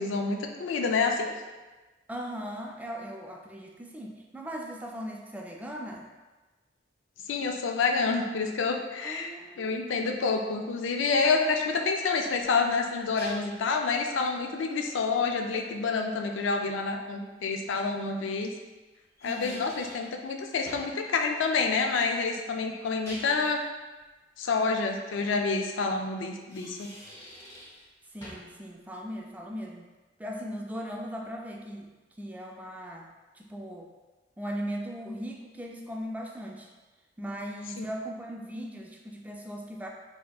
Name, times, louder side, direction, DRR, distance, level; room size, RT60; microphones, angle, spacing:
voice 1, 0.0-1.3 7.3-18.5 19.2-23.6 24.4-26.9 37.8-37.9, left 4 dB, 85° left, 3 dB, 0.4 m, -28 dB
voice 2, 2.1-6.1 9.0-10.2 19.2-19.7 28.1-29.9 30.2-31.9 32.2-33.1 33.3-33.9 34.4-36.7 37.2-39.9, equal, 10° right, 0 dB, 0.3 m, -38 dB
sound 1, 12.4-13.7 16.9-17.0 18.9-20.1 20.7-21.0 22.8-23.6 26.3-27.9 28.2-28.6, equal, 15° left, 0.8 m, -46 dB
4.1 x 2.8 x 2.3 m, 1.2 s
head